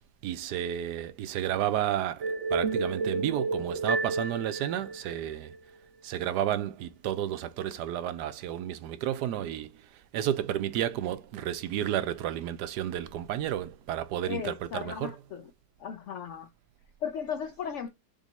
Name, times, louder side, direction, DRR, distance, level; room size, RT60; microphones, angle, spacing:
voice 1, 0.2-5.6 6.0-15.2, right 11 dB, 80° right, 1.1 m, -32 dB
sound 1, 2.2-5.6, right 3 dB, 50° right, 1.0 m, -31 dB
voice 2, 14.3-15.4 15.8-16.5 17.0-17.9, left 8 dB, 90° left, 0.6 m, -36 dB
3.7 x 3.5 x 4.1 m
omnidirectional pair, 1.8 m